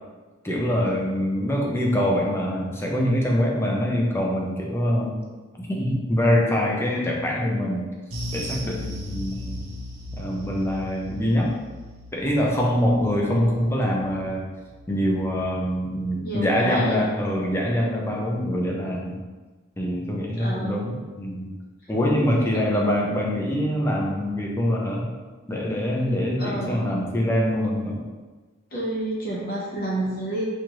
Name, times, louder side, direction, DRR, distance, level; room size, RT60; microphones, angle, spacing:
voice 1, 0.4-5.2 5.6-7.9 8.3-9.7 10.1-11.6 12.1-14.5 14.9-19.2 19.8-21.5 21.9-25.1 25.5-28.0, equal, 10° left, -2 dB, 0.5 m, -24 dB
sound 1, 8.1-16.8 17.1-17.3 17.7-17.8, left 1 dB, 80° right, 0.7 m, -38 dB
voice 2, 16.2-17.0 18.1-18.3 20.3-20.8 21.8-21.9 22.4-22.8 26.4-26.8 28.7-30.4, right 1 dB, 45° left, -4 dB, 0.8 m, -30 dB
4.3 x 2.4 x 3.0 m, 1.3 s
head